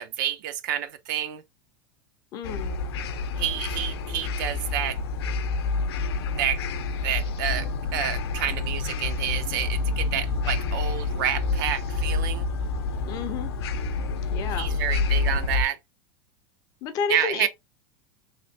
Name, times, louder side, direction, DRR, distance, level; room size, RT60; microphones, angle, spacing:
voice 1, 0.0-1.4 3.4-5.0 6.4-6.6 7.0-12.5 14.6-15.8 17.1-17.5, right 10 dB, 55° right, 0.5 m, -29 dB
voice 2, 2.3-2.8 13.0-13.5 14.3-14.7 16.8-17.5, left 6 dB, 30° left, 0.5 m, -31 dB
sound 1, 2.4-15.6, left 3 dB, 85° left, 0.6 m, -28 dB
3.3 x 3.1 x 2.6 m
supercardioid pair, 170°, 13 cm